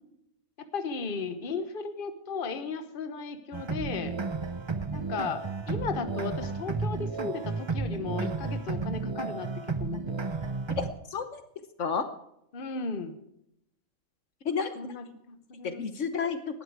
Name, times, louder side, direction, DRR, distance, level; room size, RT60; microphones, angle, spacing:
voice 1, 0.7-4.1 4.9-10.2 12.5-13.1 14.8-15.8, left 4 dB, 45° left, 9 dB, 1.2 m, -35 dB
sound 1, 3.5-10.9, right 4 dB, 25° right, 0.6 m, -32 dB
voice 2, 11.8-12.1 14.4-14.8 15.6-16.6, left 5 dB, 65° left, 9 dB, 1.3 m, -30 dB
18.5 x 12.5 x 4.7 m, 0.78 s
omnidirectional pair, 1.4 m